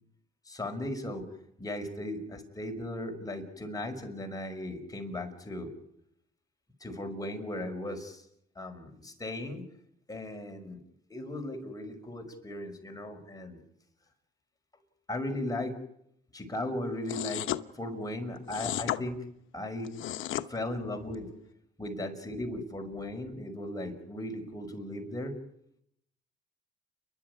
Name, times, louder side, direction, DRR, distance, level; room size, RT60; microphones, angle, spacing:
voice 1, 0.5-1.3 1.6-5.7 6.8-8.3 8.6-9.6 10.1-10.8 11.1-13.6 15.1-15.8 16.3-17.5 17.7-19.2 19.5-19.9 20.5-21.3 21.8-25.4, left 1 dB, 20° left, 4 dB, 5.6 m, -37 dB
sound 1, 17.1-17.6 18.5-19.0 19.8-20.5, left 13 dB, 80° left, 1.0 m, -33 dB
29.5 x 12.0 x 9.9 m, 0.75 s
cardioid pair, 90°, 20 cm